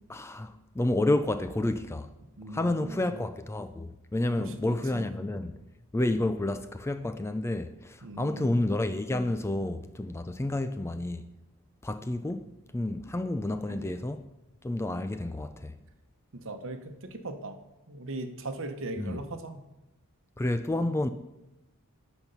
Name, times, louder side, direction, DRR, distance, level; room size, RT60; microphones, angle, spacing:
voice 1, 0.1-2.1 2.5-5.6 5.9-11.2 11.8-12.4 12.7-14.2 14.6-15.8 19.0-19.2 20.4-21.1, left 1 dB, 10° left, 0.3 m, -30 dB
voice 2, 2.4-3.1 4.4-5.0 8.0-8.6 13.7-13.9 16.3-17.6 17.9-19.6, right 2 dB, 60° right, 1.0 m, -39 dB
11.0 x 4.5 x 6.8 m
head